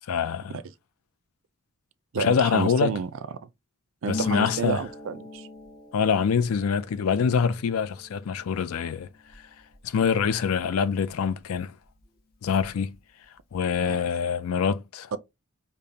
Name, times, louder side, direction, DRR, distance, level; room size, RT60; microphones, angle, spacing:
voice 1, 0.1-0.5 2.2-2.9 4.1-4.8 5.9-9.1 9.8-11.7 12.4-12.9 13.5-15.1, left 6 dB, 75° left, 0.4 m, -25 dB
voice 2, 2.1-3.1 3.4-3.5 4.0-5.5 13.9-14.0 15.1-15.2, right 6 dB, 65° right, 0.4 m, -30 dB
Harp, 4.1-11.6 11.8-13.0 13.2-13.9, left 3 dB, 45° left, 0.7 m, -43 dB
5.1 x 2.1 x 2.7 m
head